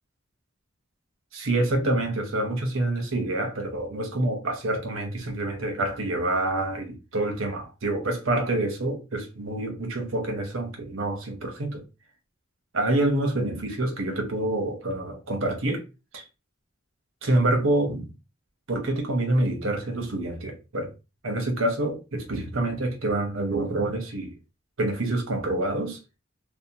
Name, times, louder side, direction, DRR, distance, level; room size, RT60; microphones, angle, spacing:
voice 1, 1.3-11.8 12.7-15.8 16.1-16.2 17.2-18.1 18.7-20.9 21.2-24.3 24.8-26.0, right 1 dB, 85° right, 0.8 m, -27 dB
2.7 x 2.0 x 2.7 m
head